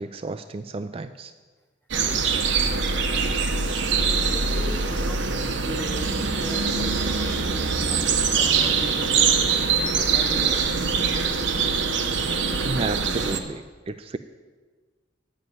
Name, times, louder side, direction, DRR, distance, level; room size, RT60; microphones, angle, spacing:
voice 1, 0.0-1.3 12.6-14.2, right 3 dB, 30° right, 10 dB, 0.3 m, -32 dB
sound 1, 1.9-13.4, right 5 dB, 70° right, 0.9 m, -23 dB
voice 2, 4.0-5.2 5.6-9.3 10.1-10.7, equal, 10° left, 0 dB, 0.8 m, -38 dB
11.0 x 7.5 x 7.9 m, 1.4 s
head